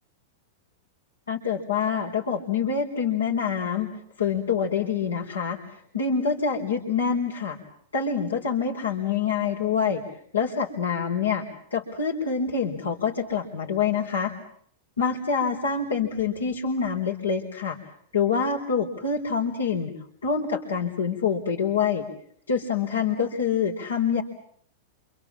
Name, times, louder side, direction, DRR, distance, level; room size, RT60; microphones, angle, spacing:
voice 1, 1.3-3.9 4.2-7.6 7.9-10.0 10.3-11.4 11.7-14.3 15.0-17.8 18.1-19.9 20.2-22.1 22.5-24.2, left 6 dB, 85° left, -1 dB, 4.8 m, -26 dB
28.5 x 27.5 x 7.3 m, 0.65 s
hypercardioid pair, 100°, 0 cm